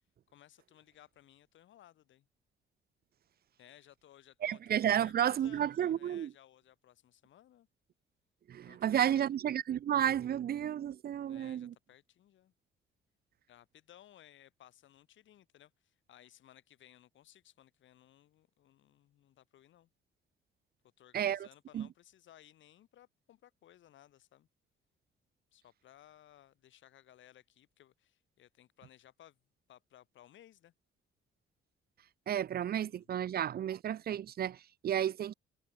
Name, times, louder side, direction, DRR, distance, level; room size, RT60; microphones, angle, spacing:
voice 1, 0.3-2.3 3.6-4.6 4.9-7.7 8.6-9.3 11.3-12.5 13.5-19.9 21.0-24.5 25.5-29.4 29.7-30.7 32.8-33.4, left 12 dB, 70° left, 2.4 m, -60 dB
voice 2, 4.4-6.3 8.5-11.7 21.1-21.5 21.7-21.9 32.3-35.3, right 10 dB, 50° right, 0.6 m, -32 dB
cardioid pair, 90°, 20 cm